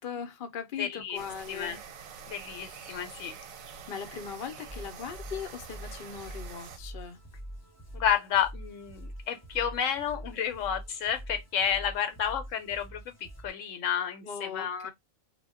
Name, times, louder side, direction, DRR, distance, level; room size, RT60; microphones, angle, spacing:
voice 1, 0.0-1.8 3.9-7.2 14.2-14.9, left 7 dB, 55° left, 0.6 m, -39 dB
voice 2, 0.8-1.2 1.5-1.8 2.3-3.3 7.9-13.1 13.4-14.9, left 8 dB, 75° left, 0.9 m, -31 dB
sound 1, 1.1-6.8, right 6 dB, 85° right, 1.0 m, -46 dB
sound 2, 4.7-13.5, equal, 15° left, 0.6 m, -45 dB
2.2 x 2.0 x 3.4 m
omnidirectional pair, 1.4 m